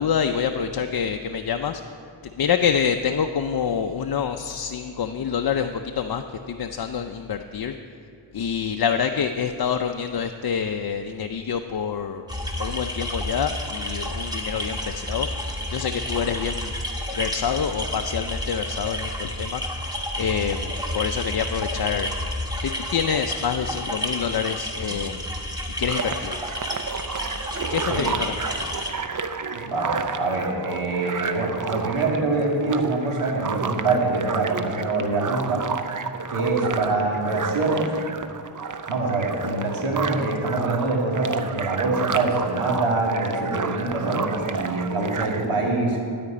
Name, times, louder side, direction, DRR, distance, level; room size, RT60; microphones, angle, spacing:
voice 1, 0.0-1.8 2.4-7.8 8.3-12.2 12.6-15.3 15.7-16.7 17.1-19.6 20.2-22.1 22.6-25.2 25.8-26.3 27.7-28.7, left 7 dB, 50° left, 6 dB, 0.6 m, -26 dB
sound 1, 12.3-28.9, left 1 dB, 10° right, 1.7 m, -30 dB
sound 2, 25.9-45.5, right 5 dB, 40° right, 0.7 m, -31 dB
voice 2, 29.5-35.6 36.3-37.9 38.9-46.0, right 2 dB, 80° right, -2 dB, 2.3 m, -24 dB
13.0 x 5.2 x 8.5 m, 2.4 s
cardioid pair, 50°, 50 cm